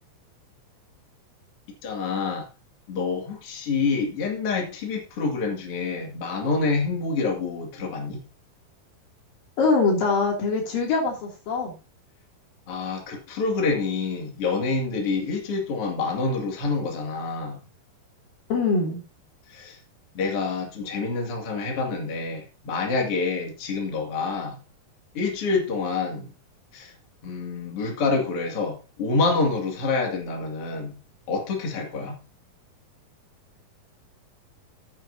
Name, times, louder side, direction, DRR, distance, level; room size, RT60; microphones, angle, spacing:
voice 1, 1.8-2.5 2.9-8.2 12.7-17.6 19.5-19.8 20.1-24.6 25.1-26.3 26.7-26.9 27.2-31.0 31.3-32.2, left 4 dB, 45° left, 2.9 m, -27 dB
voice 2, 9.6-11.7 18.5-19.0, left 4 dB, 75° left, 4.4 m, -23 dB
14.0 x 8.6 x 2.7 m
omnidirectional pair, 4.1 m